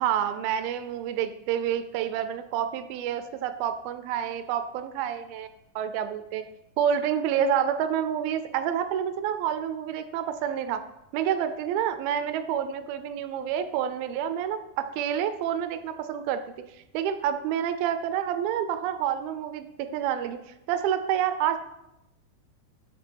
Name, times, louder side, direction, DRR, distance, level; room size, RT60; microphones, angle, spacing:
voice 1, 0.0-5.5 5.8-6.5 6.8-10.8 11.1-16.4 16.9-20.4 20.7-21.6, right 9 dB, 80° right, 10 dB, 2.2 m, -28 dB
13.0 x 5.4 x 4.5 m, 0.88 s
omnidirectional pair, 4.9 m